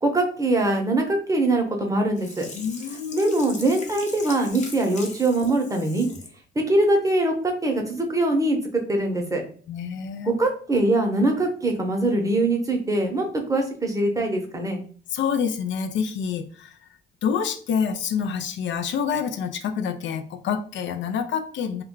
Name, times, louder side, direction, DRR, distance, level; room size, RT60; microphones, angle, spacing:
voice 1, 0.0-2.5 3.1-6.1 6.6-8.6 8.9-9.4 10.2-14.8, right 2 dB, 15° right, 2 dB, 0.8 m, -22 dB
Sink (filling or washing), 2.2-6.4 6.8-6.9, left 3 dB, 35° left, 0.8 m, -40 dB
voice 2, 2.5-3.4 9.7-10.4 15.1-16.8 17.2-21.8, left 7 dB, 70° left, 6 dB, 0.4 m, -27 dB
2.2 x 2.2 x 3.7 m, 0.44 s
cardioid pair, 90°, 20 cm